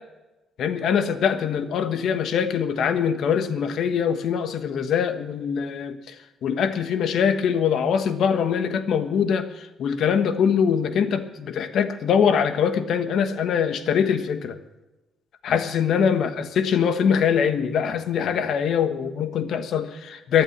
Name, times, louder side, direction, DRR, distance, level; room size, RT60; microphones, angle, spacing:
voice 1, 0.6-6.2 6.4-14.6 15.4-20.4, left 7 dB, 70° left, 10 dB, 1.3 m, -23 dB
15.0 x 10.5 x 7.3 m, 1.0 s
cardioid pair, 90°, 0 cm